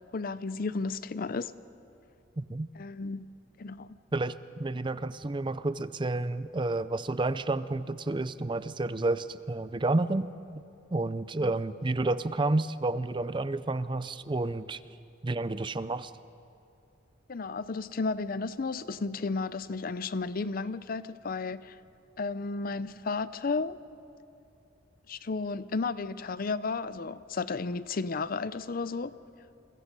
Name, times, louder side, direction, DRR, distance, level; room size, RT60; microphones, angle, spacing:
voice 1, 0.0-1.5 2.8-3.3 3.6-3.9 11.4-11.5 17.3-21.8 22.2-23.8 25.1-29.2, left 4 dB, 50° left, 0.5 m, -33 dB
voice 2, 2.4-2.7 4.1-10.6 10.9-14.8 15.2-16.1, right 2 dB, 25° right, 0.5 m, -30 dB
29.5 x 23.0 x 5.3 m
head